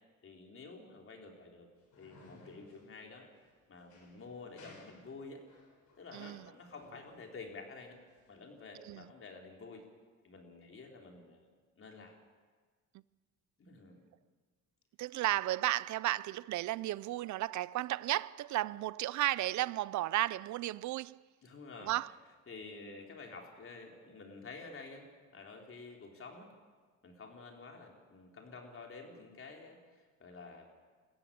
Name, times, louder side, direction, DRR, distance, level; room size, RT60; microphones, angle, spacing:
voice 1, 0.2-1.7 2.0-3.3 3.7-5.4 6.0-8.0 8.3-9.8 10.2-11.5 11.8-12.2 13.6-14.0 21.4-22.0 22.5-26.5 27.0-30.7, left 3 dB, 45° left, 4.1 m, -50 dB
sound 1, 1.8-8.6, left 2 dB, 70° left, 6.7 m, -60 dB
voice 2, 6.1-6.4 8.8-9.0 15.0-21.2 21.9-22.1, right 15 dB, 70° right, 0.5 m, -34 dB
22.0 x 14.5 x 8.7 m
cardioid pair, 90°, 30 cm